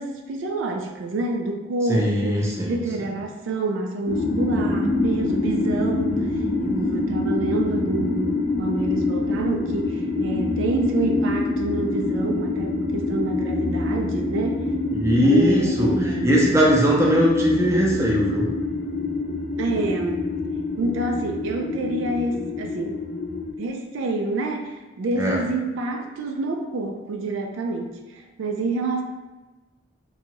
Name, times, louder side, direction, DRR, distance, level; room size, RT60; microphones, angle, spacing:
voice 1, 0.0-6.3 6.6-14.7 15.2-16.4 19.6-20.3 20.8-23.0 23.6-29.0, right 2 dB, 80° right, 2 dB, 0.3 m, -28 dB
voice 2, 1.9-2.8 14.9-18.5 25.2-25.4, equal, 15° right, -3 dB, 0.5 m, -20 dB
sound 1, 4.1-23.5, left 2 dB, 50° left, 0.4 m, -26 dB
2.8 x 2.2 x 2.8 m, 1.1 s
head